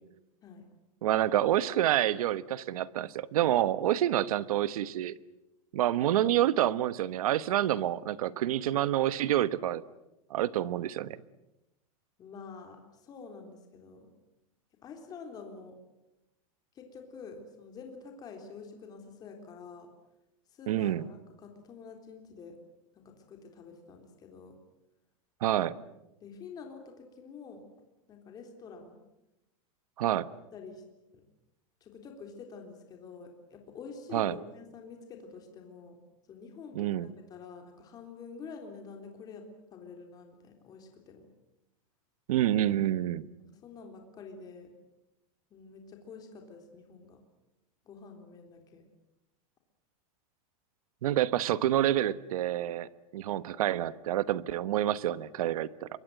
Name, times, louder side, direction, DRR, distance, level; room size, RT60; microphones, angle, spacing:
voice 1, 1.0-5.1 5.7-9.8 10.3-11.2 20.7-21.0 25.4-25.7 30.0-30.3 34.1-34.4 36.7-37.1 42.3-43.3 51.0-55.9, right 12 dB, 85° right, 16 dB, 1.2 m, -28 dB
voice 2, 12.2-14.1 14.8-15.8 16.8-19.9 20.5-22.6 22.9-24.5 26.2-27.6 28.1-29.0 30.5-30.8 31.1-31.2 31.8-36.0 36.3-36.9 37.3-39.4 39.7-41.3 43.4-44.7 45.5-47.2 47.9-48.8, left 5 dB, 20° left, 3 dB, 3.7 m, -47 dB
27.0 x 23.0 x 7.9 m, 0.92 s
supercardioid pair, 170°, 18 cm